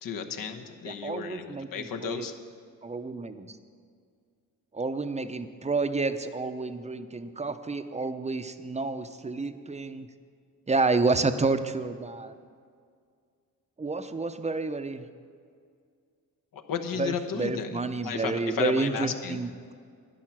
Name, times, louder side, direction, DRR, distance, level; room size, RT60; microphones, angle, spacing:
voice 1, 0.0-2.3 16.5-19.4, left 7 dB, 75° left, 5 dB, 1.1 m, -33 dB
voice 2, 0.8-2.3 2.8-3.6 4.7-10.1 10.7-12.3 13.8-15.0 17.0-19.7, right 3 dB, 20° right, 10 dB, 0.6 m, -30 dB
11.5 x 10.5 x 5.9 m, 2.2 s
cardioid pair, 90°, 34 cm